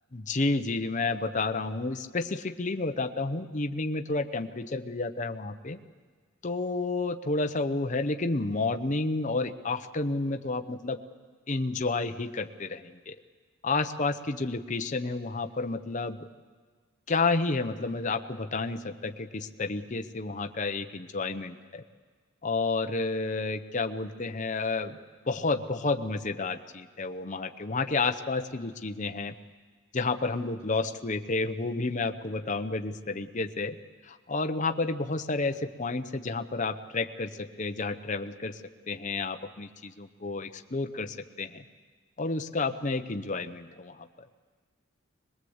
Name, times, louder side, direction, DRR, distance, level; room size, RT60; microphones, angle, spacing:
voice 1, 0.1-5.8 6.4-11.0 11.5-13.1 13.6-16.3 17.1-21.8 22.4-25.0 25.3-29.3 29.9-33.8 34.1-38.6 38.9-41.6 42.2-44.0, left 3 dB, 35° left, 7 dB, 0.8 m, -30 dB
22.5 x 21.0 x 8.0 m, 1.5 s
head